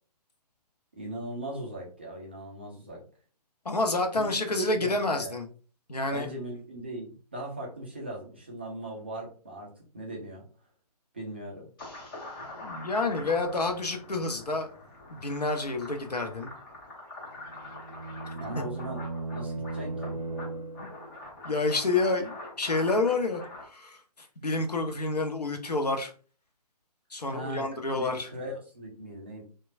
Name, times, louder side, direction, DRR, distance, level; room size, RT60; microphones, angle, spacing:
voice 1, 0.9-3.0 4.1-5.4 6.1-10.4 11.1-11.7 18.3-20.2 27.3-29.4, right 1 dB, 15° right, -3 dB, 0.3 m, -39 dB
voice 2, 3.6-5.5 5.9-6.3 12.6-14.7 15.1-16.5 21.4-26.1 27.1-28.3, left 3 dB, 75° left, 4 dB, 0.7 m, -29 dB
sound 1, 11.8-23.6, left 2 dB, 30° left, 0.9 m, -44 dB
sound 2, 17.3-21.2, right 3 dB, 80° right, 0.5 m, -37 dB
2.9 x 2.2 x 2.4 m, 0.39 s
figure-of-eight pair, 135°, 21 cm